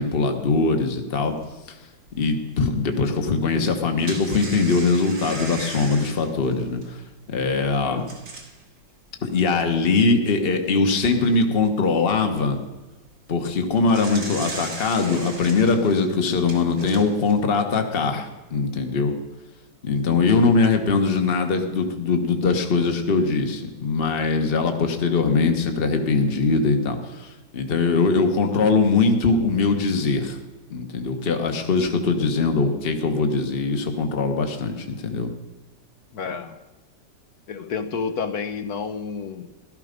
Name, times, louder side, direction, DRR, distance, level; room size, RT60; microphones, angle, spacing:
voice 1, 0.0-1.3 2.2-7.0 7.3-8.0 9.2-12.6 13.3-19.1 19.8-30.4 30.7-35.3, left 4 dB, 35° left, 5 dB, 1.4 m, -21 dB
sound 1, 1.4-1.5 2.1-2.2 3.6-8.6 9.3-9.4 9.7-9.8 10.5-11.3 13.5-17.3, right 3 dB, 85° right, 3.4 m, -37 dB
voice 2, 7.8-8.1 36.1-36.6 37.5-39.5, left 5 dB, 60° left, 9 dB, 1.4 m, -30 dB
17.0 x 13.0 x 5.2 m, 1.1 s
omnidirectional pair, 1.9 m